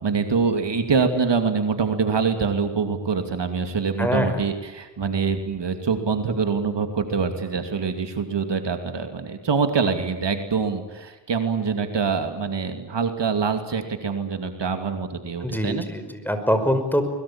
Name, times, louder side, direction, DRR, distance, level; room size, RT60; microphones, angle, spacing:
voice 1, 0.0-15.9, right 5 dB, 80° right, 7 dB, 2.8 m, -25 dB
voice 2, 4.0-4.4 15.4-17.0, equal, 5° left, 7 dB, 5.5 m, -23 dB
23.0 x 22.0 x 8.8 m, 1.1 s
cardioid pair, 55°, 42 cm